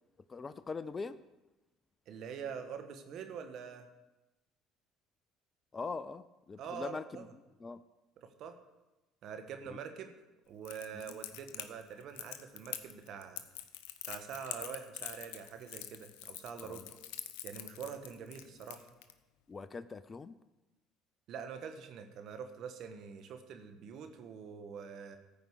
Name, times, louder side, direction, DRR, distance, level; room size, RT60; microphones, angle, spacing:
voice 1, 0.3-1.2 5.7-7.3 7.6-7.8 9.7-9.8 10.9-11.2 16.6-16.8 19.5-20.4, left 4 dB, 30° left, 13 dB, 0.5 m, -42 dB
voice 2, 2.1-3.9 6.6-7.3 8.2-8.6 9.2-10.1 10.5-13.4 14.1-16.9 17.4-18.9 21.3-25.2, right 7 dB, 60° right, 7 dB, 1.4 m, -45 dB
Crackle, 10.6-19.1, left 12 dB, 80° left, 0.8 m, -45 dB
14.0 x 5.2 x 8.1 m, 1.0 s
hypercardioid pair, 70°, 0 cm